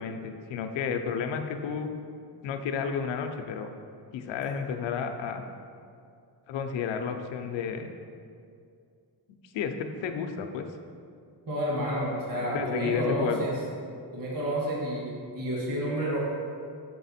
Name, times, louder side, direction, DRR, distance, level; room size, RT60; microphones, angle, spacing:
voice 1, 0.0-1.9 2.4-3.7 4.1-5.4 6.5-7.9 9.5-10.7 12.4-13.5, left 6 dB, 90° left, 6 dB, 0.6 m, -32 dB
voice 2, 11.5-13.5 14.1-16.2, equal, 50° right, -4 dB, 1.5 m, -30 dB
6.8 x 4.2 x 4.1 m, 2.4 s
wide cardioid pair, 160°, 43 cm